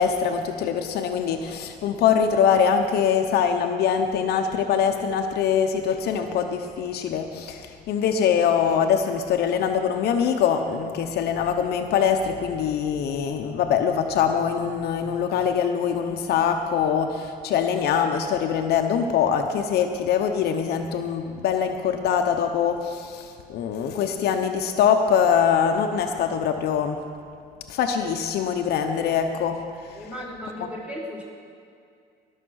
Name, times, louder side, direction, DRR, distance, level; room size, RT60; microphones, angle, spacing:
voice 1, 0.0-27.0 27.7-29.6, left 7 dB, 70° left, 5 dB, 0.9 m, -23 dB
voice 2, 29.9-31.2, equal, 5° right, -6 dB, 4.0 m, -35 dB
19.0 x 6.6 x 6.4 m, 2.4 s
cardioid pair, 110°, 17 cm